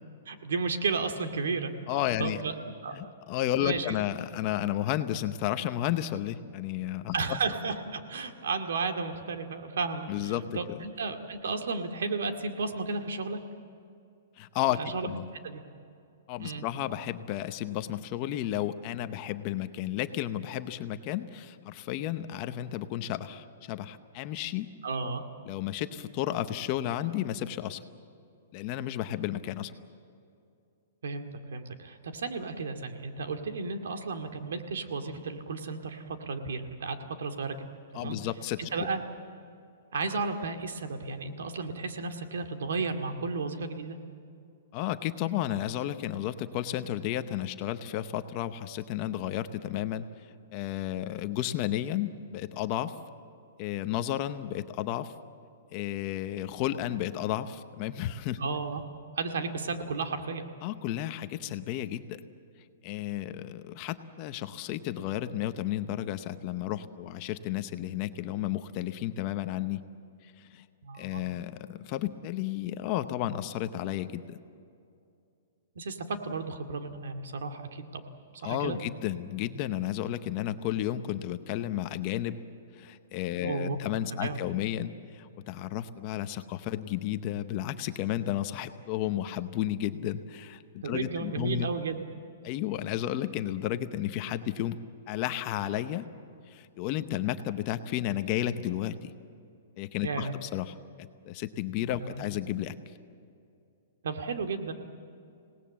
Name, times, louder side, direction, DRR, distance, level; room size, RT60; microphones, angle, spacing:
voice 1, 0.3-2.5 2.8-3.1 3.6-4.0 7.1-13.4 14.7-15.2 15.4-15.6 16.4-16.7 24.8-25.2 31.0-37.6 37.9-38.2 38.7-39.0 39.9-44.0 58.4-58.8 59.1-60.4 70.8-71.2 75.8-78.0 78.4-78.8 83.4-83.8 84.1-84.4 90.8-92.0 100.0-100.3 102.0-102.3 104.0-104.7, right 4 dB, 85° right, 6 dB, 2.2 m, -33 dB
voice 2, 1.9-2.4 2.9-7.2 10.1-10.8 14.4-15.3 16.3-24.7 25.5-27.8 28.5-29.7 37.9-38.7 44.7-50.0 50.5-53.0 53.6-55.1 55.7-58.4 60.6-62.2 62.8-69.8 70.4-70.6 71.0-74.4 78.4-82.4 82.8-91.7 92.4-94.8 95.1-96.1 96.5-99.1 99.8-102.7, left 12 dB, 25° left, 10 dB, 0.7 m, -32 dB
26.5 x 18.5 x 7.5 m, 2.5 s
hypercardioid pair, 175°, 0 cm